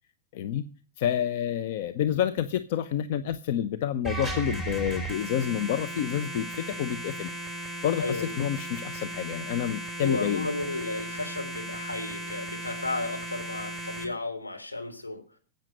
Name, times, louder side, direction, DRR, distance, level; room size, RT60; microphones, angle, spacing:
voice 1, 0.3-0.6 1.0-7.3 7.8-10.5, left 10 dB, 50° left, 10 dB, 0.8 m, -29 dB
sound 1, 4.0-14.0, right 1 dB, 10° left, 4.6 m, -36 dB
voice 2, 8.0-8.3 10.0-15.2, left 2 dB, 80° left, 3 dB, 3.5 m, -33 dB
13.5 x 8.9 x 6.5 m, 0.37 s
figure-of-eight pair, 90°, 0 cm